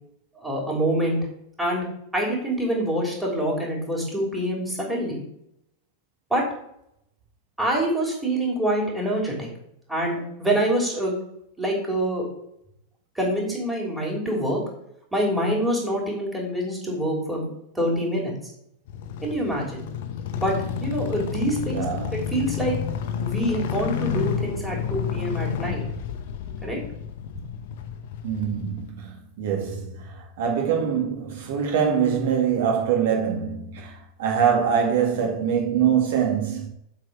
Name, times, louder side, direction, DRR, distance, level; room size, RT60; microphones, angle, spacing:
voice 1, 0.3-1.2 1.6-1.8 2.1-5.2 6.3-6.4 7.6-9.5 9.9-11.1 11.6-12.2 13.1-14.6 15.1-17.5 17.7-18.5 19.2-19.8 20.4-20.5 20.8-21.8 22.1-22.7 23.2-25.8 26.6-26.8 27.3-27.4, right 1 dB, 5° right, 3.4 m, -25 dB
sound 1, 18.9-28.9, left 8 dB, 50° left, 0.9 m, -30 dB
voice 2, 21.7-22.3 28.2-36.7, right 7 dB, 55° right, 2.1 m, -24 dB
7.5 x 4.4 x 6.6 m
figure-of-eight pair, 90°, 0 cm